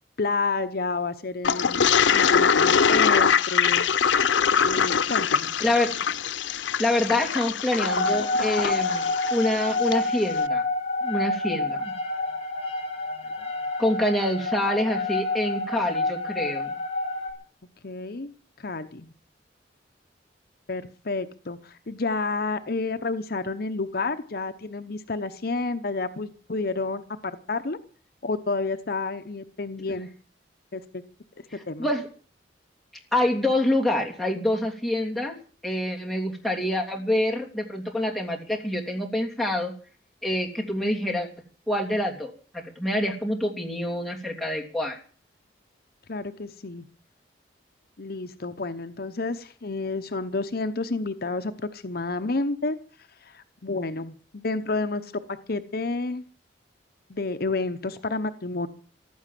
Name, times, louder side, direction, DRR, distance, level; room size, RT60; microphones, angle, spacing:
voice 1, 0.2-3.9 4.6-5.5 11.4-11.6 17.8-18.3 18.6-19.1 20.7-27.8 28.2-30.1 30.7-31.0 31.4-31.9 46.1-46.8 48.0-52.8 53.2-55.2 55.5-56.2 57.1-58.7, left 3 dB, 55° left, 9 dB, 0.9 m, -30 dB
Toilet flush, 1.4-10.0, left 7 dB, 90° left, 0.7 m, -23 dB
voice 2, 5.6-5.9 6.8-10.6 11.0-11.9 13.8-16.8 31.8-32.1 33.1-35.3 35.6-39.7 40.2-41.3 41.7-45.0, left 1 dB, ahead, -1 dB, 3.0 m, -26 dB
sound 1, 7.8-17.3, left 2 dB, 35° left, 5.8 m, -28 dB
15.0 x 12.0 x 7.6 m, 0.43 s
head